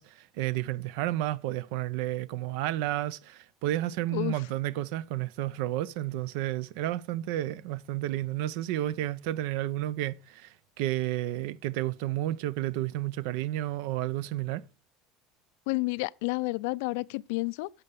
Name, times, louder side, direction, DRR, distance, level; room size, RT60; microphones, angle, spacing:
voice 1, 0.0-14.6, right 14 dB, 75° right, 0.4 m, -31 dB
voice 2, 15.7-17.7, left 24 dB, 80° left, 0.4 m, -30 dB
11.0 x 6.9 x 3.4 m
cardioid pair, 145°, 0 cm